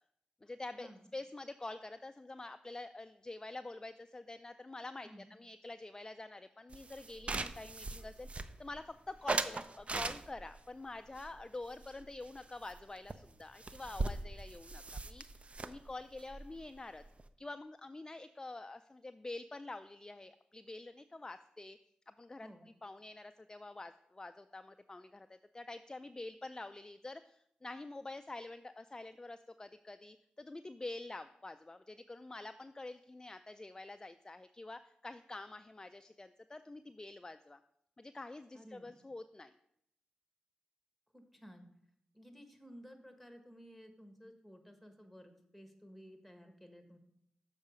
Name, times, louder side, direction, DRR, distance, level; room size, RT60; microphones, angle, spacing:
voice 1, 0.4-17.0 17.4-21.8 22.1-22.5 22.8-37.6 38.0-39.5, left 2 dB, 20° left, 10 dB, 0.3 m, -47 dB
sound 1, 6.7-8.8 9.3-10.6 11.1-12.4 12.7-12.8 13.1-13.2 13.4-17.3, right 3 dB, 40° right, 0.5 m, -40 dB
voice 2, 38.5-39.0 41.1-41.7 42.1-47.0, equal, ahead, 5 dB, 1.4 m, -55 dB
7.2 x 4.7 x 5.1 m, 0.75 s
cardioid pair, 55°, 3 cm